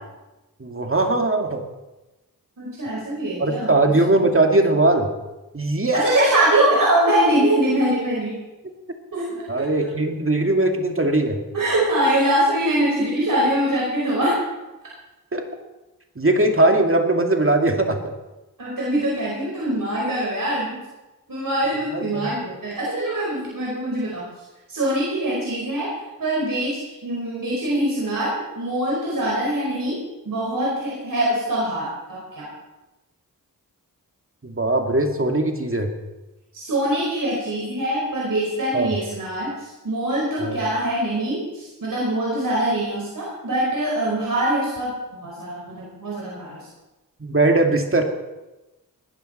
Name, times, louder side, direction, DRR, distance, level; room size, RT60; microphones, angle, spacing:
voice 1, 0.6-1.6 3.4-5.1 5.5-6.4 9.5-11.4 15.3-15.4 16.2-18.0 21.9-22.3 34.4-35.9 38.7-38.9 40.4-40.6 47.2-48.0, right 2 dB, 40° right, 3 dB, 2.3 m, -20 dB
voice 2, 2.6-3.9 5.9-8.4 9.1-9.9 11.5-14.4 18.6-20.8 21.3-24.2 24.7-25.9 26.2-32.5 36.5-46.7, right 1 dB, 70° right, -4 dB, 5.0 m, -23 dB
21.0 x 12.0 x 4.4 m, 1.1 s
cardioid pair, 55°, 35 cm